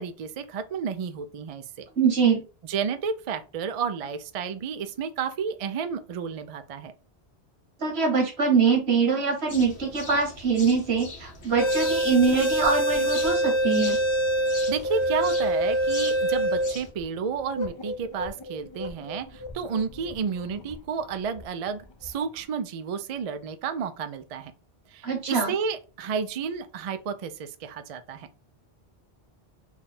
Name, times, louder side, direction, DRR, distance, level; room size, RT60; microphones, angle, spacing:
voice 1, 0.0-1.9 2.7-6.9 14.7-24.5 24.9-28.3, right 6 dB, 55° right, 0.4 m, -31 dB
voice 2, 2.0-2.4 7.8-14.0 25.0-25.5, right 5 dB, 80° right, 1.5 m, -23 dB
sound 1, 9.5-16.9, left 3 dB, 80° left, 1.3 m, -41 dB
sound 2, 11.6-20.8 21.4-21.5 22.0-22.2, equal, 40° left, 0.4 m, -26 dB
3.6 x 2.4 x 4.1 m
omnidirectional pair, 1.1 m